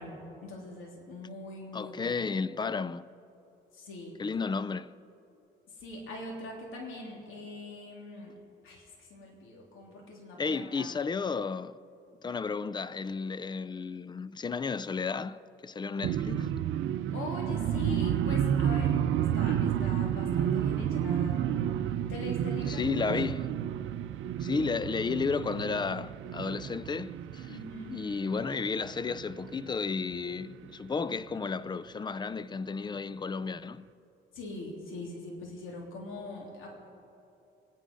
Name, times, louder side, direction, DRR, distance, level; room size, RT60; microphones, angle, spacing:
voice 1, 0.0-2.2 3.7-4.1 5.7-8.3 8.6-10.9 17.1-19.0 19.3-21.4 22.1-23.1 27.5-28.0 34.3-36.7, left 2 dB, 85° left, 3.2 m, -42 dB
voice 2, 1.7-3.1 4.2-4.9 10.4-11.8 12.2-16.5 22.7-23.5 24.4-27.5 27.9-33.8, left 5 dB, 20° left, 0.4 m, -33 dB
sound 1, 16.0-29.9 30.3-30.7 31.0-31.3, right 9 dB, 85° right, 0.6 m, -31 dB
24.5 x 10.0 x 5.4 m
cardioid pair, 90°, 20 cm